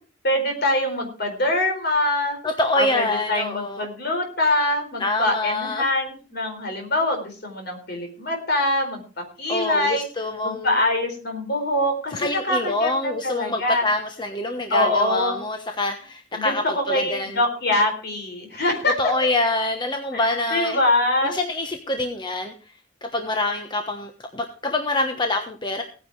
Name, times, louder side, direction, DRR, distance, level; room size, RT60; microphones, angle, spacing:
voice 1, 0.2-2.4 2.7-9.0 9.4-10.0 10.4-13.8 14.7-15.4 16.3-19.1 20.1-21.4, left 1 dB, 55° left, 4 dB, 4.4 m, -24 dB
voice 2, 2.4-3.9 5.0-5.9 9.5-10.8 12.1-17.4 19.0-20.8 21.2-22.5 23.0-25.8, left 2 dB, 25° left, 5 dB, 1.2 m, -26 dB
16.5 x 9.8 x 4.8 m, 0.38 s
head